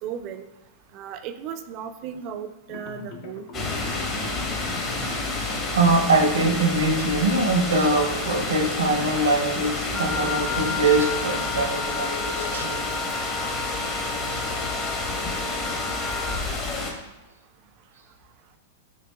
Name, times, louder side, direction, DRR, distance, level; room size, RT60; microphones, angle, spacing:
voice 1, 0.0-0.4 0.9-3.7, right 8 dB, 45° right, 8 dB, 0.3 m, -36 dB
sound 1, 2.7-11.3, left 3 dB, 60° left, 0.5 m, -41 dB
sound 2, 3.5-16.9, left 2 dB, 35° left, 0.9 m, -29 dB
voice 2, 5.7-12.8, right 2 dB, 80° right, 3 dB, 0.7 m, -23 dB
Wind instrument woodwind instrument, 9.9-16.5, left 4 dB, 15° left, 0.5 m, -33 dB
6.7 x 2.6 x 2.2 m, 1.1 s
hypercardioid pair, 100°, 0 cm